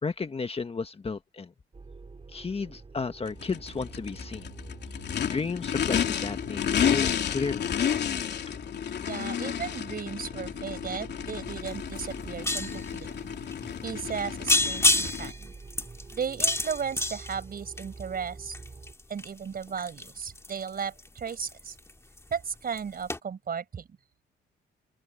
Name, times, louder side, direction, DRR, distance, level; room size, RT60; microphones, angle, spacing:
voice 1, 0.0-1.5 2.3-4.5 5.2-7.7, left 4 dB, 30° left, 1.6 m, -33 dB
sound 1, 1.7-18.9, right 4 dB, 30° right, 6.1 m, -47 dB
Race car auto racing / Idling / Accelerating revving vroom, 3.3-15.3, left 8 dB, 60° left, 3.2 m, -31 dB
voice 2, 9.1-13.1 13.8-15.5 16.1-18.5 19.1-21.7 22.3-23.9, right 7 dB, 50° right, 5.1 m, -35 dB
sound 2, 11.7-11.8 12.0-12.9 13.5-13.6 14.0-14.2 14.5-18.0 18.5-21.9 22.2-22.5 22.8-22.9 23.1-23.2, left 1 dB, 15° left, 2.6 m, -28 dB
open air
cardioid pair, 90°, 20 cm